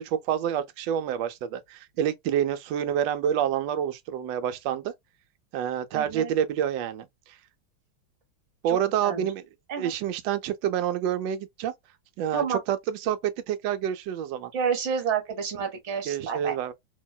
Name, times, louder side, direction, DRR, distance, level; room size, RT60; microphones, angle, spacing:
voice 1, 0.0-4.9 5.5-7.1 8.6-9.4 9.8-11.7 12.2-14.5 16.1-16.7, right 9 dB, 75° right, 1.1 m, -28 dB
voice 2, 5.9-6.3 8.7-9.3 9.7-9.9 12.3-12.6 14.5-16.5, right 6 dB, 45° right, 1.0 m, -29 dB
2.9 x 2.8 x 2.2 m
omnidirectional pair, 2.2 m